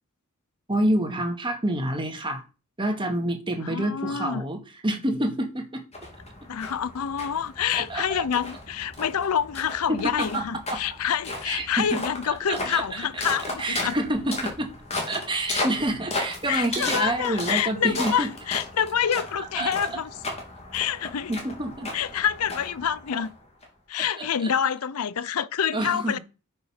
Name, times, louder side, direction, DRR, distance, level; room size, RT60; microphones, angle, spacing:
voice 1, 0.7-2.4 2.8-5.8 7.7-8.2 9.9-10.4 10.7-10.8 11.5-12.0 12.3-13.3 13.6-14.7 15.1-18.3 19.5-20.0 21.3-21.9 24.1-24.5 25.7-26.2, right 1 dB, 20° right, 2.0 m, -28 dB
voice 2, 3.6-4.4 6.5-14.0 16.5-20.1 20.7-21.3 21.9-23.3 23.9-26.2, left 8 dB, 75° left, 0.5 m, -27 dB
sound 1, 5.9-23.6, left 2 dB, 30° left, 2.9 m, -35 dB
9.4 x 5.6 x 5.8 m
head